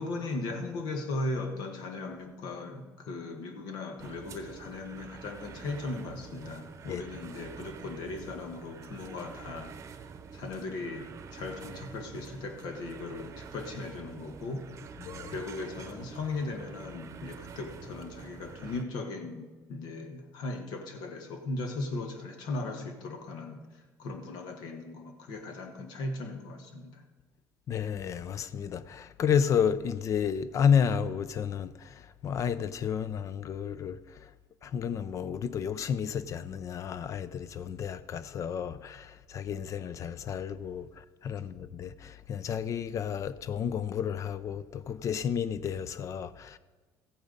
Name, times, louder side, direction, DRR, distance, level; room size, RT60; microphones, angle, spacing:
voice 1, 0.0-9.7 10.3-14.7 15.3-27.0, left 2 dB, 75° left, 1.4 m, -38 dB
sound 1, 4.0-18.8, right 6 dB, 40° right, 0.8 m, -47 dB
voice 2, 15.0-15.3 27.7-31.9 32.2-34.0 34.6-40.9 41.2-46.6, left 7 dB, 45° left, 0.5 m, -31 dB
14.5 x 8.7 x 4.0 m
cardioid pair, 115°, 7 cm